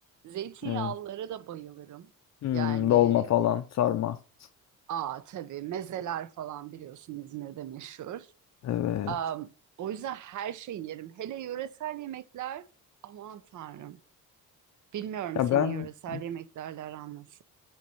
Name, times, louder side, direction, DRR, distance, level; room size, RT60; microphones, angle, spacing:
voice 1, 0.2-2.1 2.5-3.3 4.9-8.3 9.1-9.5 9.8-12.7 13.0-14.0 14.9-17.4, right 11 dB, 60° right, 0.6 m, -37 dB
voice 2, 2.4-4.2 8.6-9.1 15.4-15.9 16.1-16.2, left 12 dB, 50° left, 0.5 m, -25 dB
5.7 x 4.6 x 5.4 m
cardioid pair, 130°, 35 cm